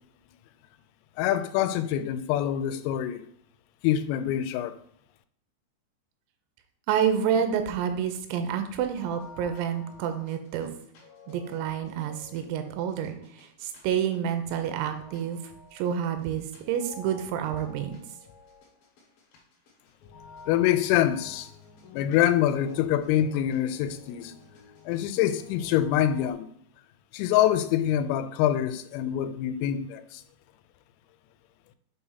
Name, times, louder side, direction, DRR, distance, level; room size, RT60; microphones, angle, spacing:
voice 1, 1.2-3.3 3.8-4.8 20.5-21.5 21.9-24.3 24.9-26.5 27.1-30.2, left 11 dB, 90° left, 3.2 m, -25 dB
voice 2, 6.9-10.7 11.3-15.4 15.7-18.0, right 8 dB, 85° right, 3.5 m, -29 dB
sound 1, 9.0-26.3, left 4 dB, 60° left, 2.5 m, -50 dB
8.0 x 2.8 x 5.5 m
omnidirectional pair, 5.9 m